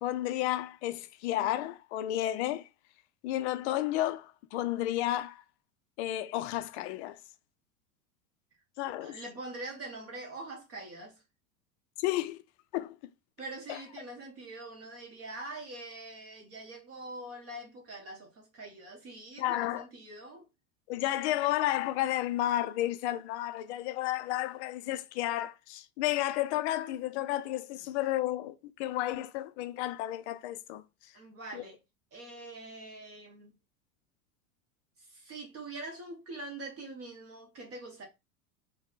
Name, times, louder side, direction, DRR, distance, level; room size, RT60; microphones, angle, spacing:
voice 1, 0.0-2.7 3.2-5.4 6.0-7.2 8.8-9.2 12.0-12.4 12.7-13.0 13.7-13.8 19.4-19.8 20.9-30.8 31.5-31.6, left 14 dB, 50° left, 0.5 m, -32 dB
voice 2, 9.0-11.2 13.4-20.5 27.7-27.9 31.1-31.8 32.1-33.5 35.0-38.0, right 2 dB, 35° right, 1.1 m, -44 dB
3.4 x 2.2 x 3.9 m
hypercardioid pair, 95°, 43 cm